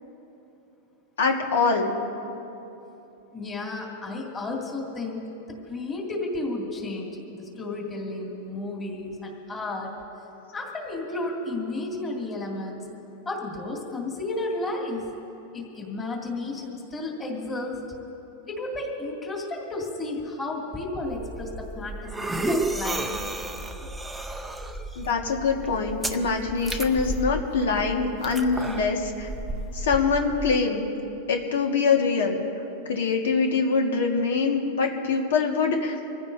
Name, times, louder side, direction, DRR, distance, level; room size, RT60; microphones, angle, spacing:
voice 1, 1.2-1.9 24.9-29.3 29.7-30.9 31.3-32.4 32.9-36.0, left 4 dB, 85° left, 2 dB, 1.6 m, -24 dB
voice 2, 3.3-5.2 5.7-9.9 10.5-12.8 13.3-15.1 15.5-17.8 18.5-23.3, left 2 dB, 15° left, -2 dB, 2.3 m, -32 dB
sound 1, 21.0-30.5, right 2 dB, 5° right, 0.6 m, -33 dB
25.5 x 15.0 x 2.7 m, 2.9 s
supercardioid pair, 160°, 0 cm